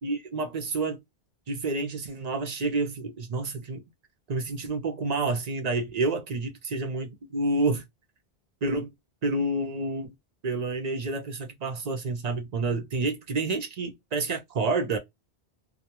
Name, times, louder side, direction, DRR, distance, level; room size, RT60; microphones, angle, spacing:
voice 1, 0.0-1.0 1.5-3.8 4.3-7.8 8.6-8.9 9.2-10.1 10.4-15.0, right 3 dB, 50° right, 0.5 m, -29 dB
2.2 x 2.2 x 2.8 m
omnidirectional pair, 1.1 m